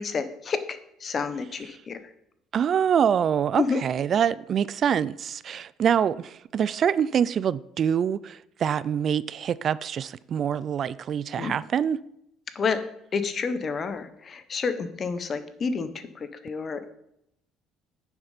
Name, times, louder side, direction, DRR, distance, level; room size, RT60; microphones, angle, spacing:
voice 1, 0.0-2.0 3.6-3.8 11.4-11.5 12.5-12.8 13.1-16.9, left 5 dB, 40° left, 1.2 m, -29 dB
voice 2, 2.5-12.0, right 8 dB, 50° right, 0.4 m, -25 dB
9.9 x 7.2 x 5.1 m
supercardioid pair, 95°, 0 cm